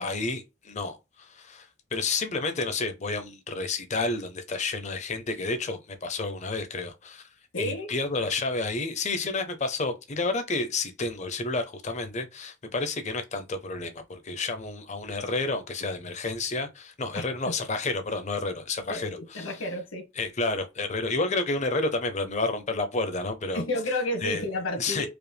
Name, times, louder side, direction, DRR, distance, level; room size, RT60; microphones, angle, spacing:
voice 1, 0.0-7.3 7.6-19.7 20.2-23.6 24.2-24.4 24.8-25.1, left 3 dB, 35° left, 0.6 m, -30 dB
voice 2, 7.5-7.9 17.1-17.5 18.9-20.0 23.5-25.1, left 1 dB, 80° left, 1.2 m, -31 dB
4.8 x 2.1 x 3.3 m
head